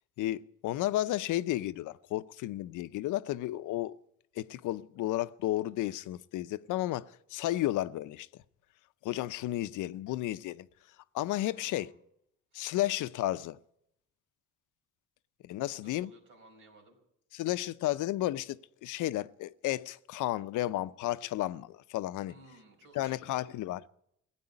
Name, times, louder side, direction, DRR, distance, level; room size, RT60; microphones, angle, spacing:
voice 1, 0.2-4.0 4.4-8.3 9.0-10.7 11.1-11.9 12.5-13.6 15.4-16.1 17.3-22.3 23.0-23.9, left 15 dB, 80° left, 0.6 m, -33 dB
voice 2, 11.5-12.0 15.6-17.0 22.3-23.5, right 2 dB, 90° right, 5.0 m, -57 dB
16.5 x 9.0 x 9.7 m
cardioid pair, 90°, 30 cm